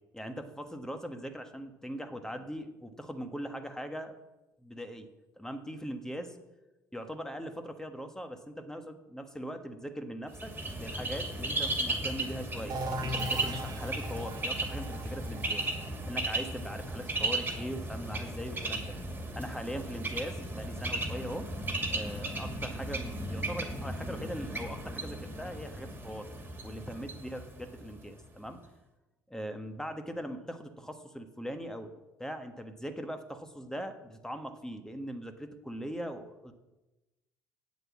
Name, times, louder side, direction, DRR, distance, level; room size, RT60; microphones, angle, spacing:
voice 1, 0.1-4.2 4.6-5.1 5.3-6.4 6.9-15.6 16.1-18.9 19.3-21.5 21.9-26.3 26.6-28.6 29.3-36.5, equal, 5° left, 6 dB, 1.5 m, -40 dB
Bird, 10.3-28.1, right 1 dB, 20° right, 2.6 m, -36 dB
sound 1, 12.7-18.3, right 1 dB, 45° right, 1.8 m, -40 dB
8.6 x 7.9 x 7.3 m, 1.1 s
hypercardioid pair, 60°, 9 cm